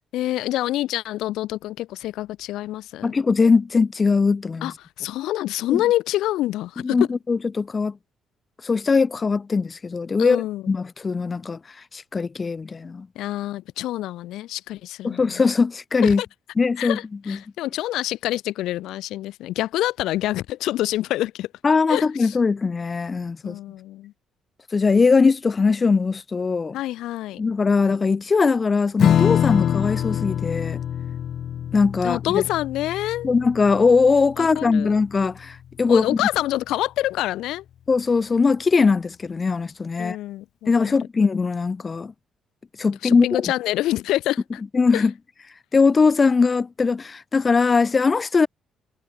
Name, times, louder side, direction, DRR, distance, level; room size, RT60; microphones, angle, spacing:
voice 1, 0.1-3.1 4.6-7.1 10.2-10.6 13.1-15.5 16.0-16.3 16.8-21.5 21.9-22.4 23.4-24.1 26.7-27.4 32.0-33.3 34.4-35.0 35.9-37.6 40.0-41.0 43.0-44.6 44.9-45.1, left 15 dB, 85° left, 1.0 m, -26 dB
voice 2, 3.0-4.7 5.7-5.8 6.8-8.0 8.6-11.6 11.9-13.1 15.0-16.2 16.6-17.0 17.3-17.4 21.6-23.6 24.7-26.8 27.4-30.8 31.7-32.4 33.2-36.2 37.9-40.2 40.7-42.1 42.8-43.3 44.7-45.1 45.7-48.5, left 4 dB, 30° left, 0.9 m, -20 dB
Strum, 29.0-35.8, left 9 dB, 60° left, 0.4 m, -25 dB
cardioid pair, 100°, 0 cm